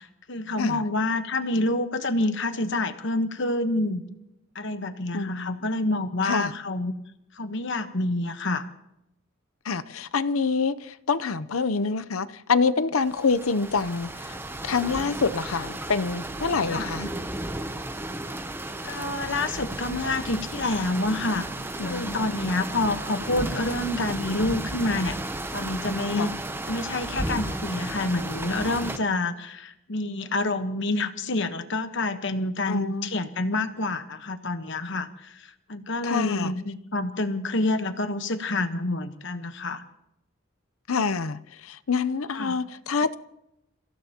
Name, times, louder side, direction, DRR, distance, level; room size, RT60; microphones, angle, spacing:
voice 1, 0.0-4.0 4.5-6.9 7.4-8.7 16.7-16.9 18.8-21.4 21.8-25.2 25.5-26.3 26.7-35.1 35.7-39.8 42.3-42.6, left 2 dB, 60° left, 1.1 m, -28 dB
voice 2, 5.1-5.6 6.2-6.5 9.7-14.3 14.6-17.1 21.8-22.3 26.1-26.3 32.7-33.1 36.0-36.5 40.9-43.2, left 4 dB, 80° left, 0.7 m, -26 dB
sound 1, 13.0-29.0, right 1 dB, 10° right, 0.6 m, -34 dB
30.0 x 16.0 x 2.9 m
head